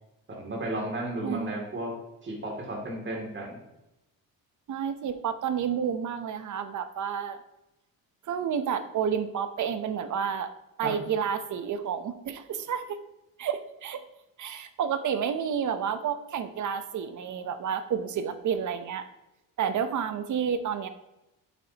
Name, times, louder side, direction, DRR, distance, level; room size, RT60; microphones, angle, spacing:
voice 1, 0.3-2.0 2.2-3.6 10.8-11.0, right 1 dB, 30° right, 0 dB, 2.6 m, -33 dB
voice 2, 1.2-1.6 4.7-7.4 8.3-10.5 10.8-13.0 13.4-14.0 14.4-19.1 19.6-20.9, right 7 dB, 55° right, 10 dB, 0.8 m, -30 dB
8.3 x 7.7 x 2.9 m, 0.93 s
cardioid pair, 110°, 36 cm